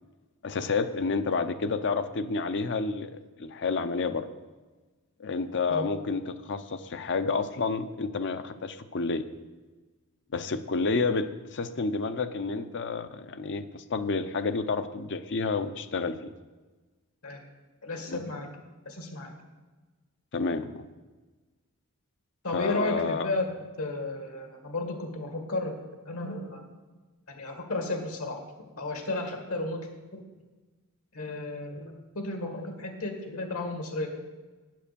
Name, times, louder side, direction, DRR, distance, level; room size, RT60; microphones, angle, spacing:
voice 1, 0.4-4.3 5.2-9.3 10.3-16.2 18.1-18.2 20.3-20.9 22.5-23.3, left 4 dB, 55° left, 10 dB, 0.7 m, -30 dB
voice 2, 17.8-18.5 18.9-19.3 22.4-23.5 23.8-26.6 27.3-28.4 28.8-30.2 31.1-34.1, left 2 dB, 75° left, 3 dB, 2.0 m, -33 dB
9.2 x 7.6 x 6.9 m, 1.3 s
head